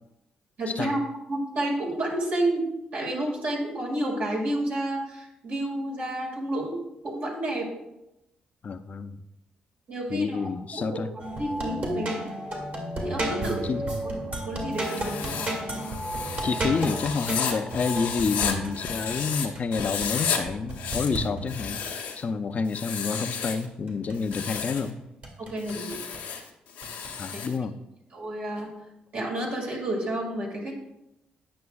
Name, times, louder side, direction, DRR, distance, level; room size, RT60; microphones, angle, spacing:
voice 1, 0.6-1.0 1.3-2.7 2.9-6.8 7.0-7.7 9.9-11.0 11.4-12.3 13.0-13.7 14.4-15.5 25.4-26.0 27.3-27.4 28.1-28.7 29.1-30.7, right 1 dB, 70° right, -3 dB, 2.0 m, -30 dB
voice 2, 8.6-9.2 10.1-11.1 13.4-13.9 16.4-25.0 27.2-27.8, left 5 dB, 45° left, 10 dB, 0.5 m, -29 dB
sound 1, 11.2-21.9 23.6-24.9 25.2-26.3 26.8-27.1, right 1 dB, 50° right, 2.0 m, -33 dB
Writing, 14.7-19.5 19.7-20.4 20.7-22.2 22.7-23.7 24.2-24.9 25.6-27.6, left 7 dB, 90° left, 0.9 m, -33 dB
9.5 x 5.8 x 2.3 m, 0.90 s
supercardioid pair, 65°, 3 cm